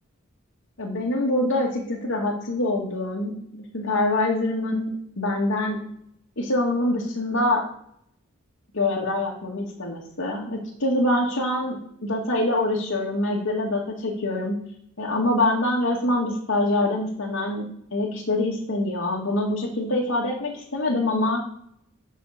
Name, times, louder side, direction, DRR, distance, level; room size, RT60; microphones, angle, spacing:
voice 1, 0.8-5.8 6.4-7.6 8.7-14.6 15.0-17.7 17.9-21.4, left 1 dB, 80° left, -2 dB, 1.9 m, -25 dB
9.2 x 5.7 x 6.6 m, 0.69 s
head